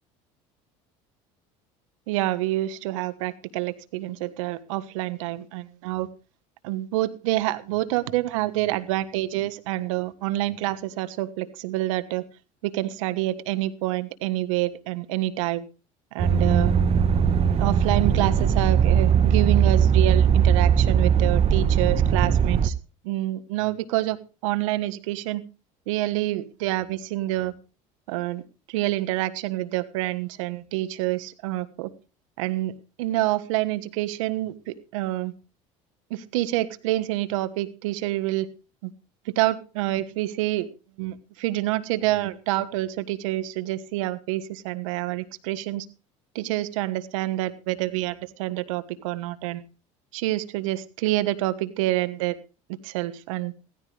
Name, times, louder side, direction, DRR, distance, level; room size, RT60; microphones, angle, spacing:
voice 1, 2.1-6.1 6.6-12.2 12.6-15.7 16.1-16.7 17.6-22.7 23.0-25.4 25.9-27.5 28.1-28.4 28.7-31.9 32.4-35.3 36.1-38.5 38.8-38.9 39.2-40.7 41.0-45.9 46.3-49.6 50.1-52.4 52.8-53.5, right 16 dB, 85° right, 14 dB, 1.4 m, -27 dB
sound 1, 16.2-22.7, right 7 dB, 40° right, 1.3 m, -19 dB
16.0 x 14.5 x 3.4 m, 0.34 s
supercardioid pair, 90°, 16 cm